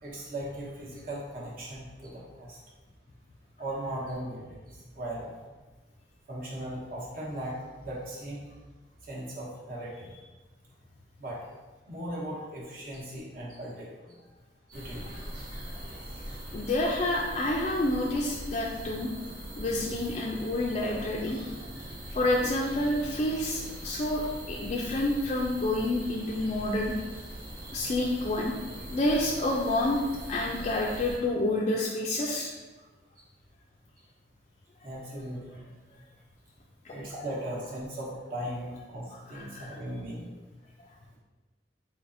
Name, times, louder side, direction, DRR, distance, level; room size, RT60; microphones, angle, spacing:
voice 1, 0.0-2.6 3.6-4.6 4.9-5.4 6.3-7.5 7.8-8.4 9.0-10.1 11.2-11.5 11.9-14.1 14.7-15.2 34.8-35.6 36.9-40.3, right 1 dB, 50° right, -5 dB, 1.0 m, -38 dB
sound 1, 14.7-31.2, right 1 dB, 75° right, 1.2 m, -41 dB
voice 2, 16.5-19.1 19.6-21.7 22.1-26.9 27.7-28.6 28.9-30.0 30.3-32.5 36.8-37.0 39.3-39.8, left 1 dB, 35° left, -2 dB, 0.3 m, -29 dB
4.1 x 3.3 x 2.5 m, 1.2 s
head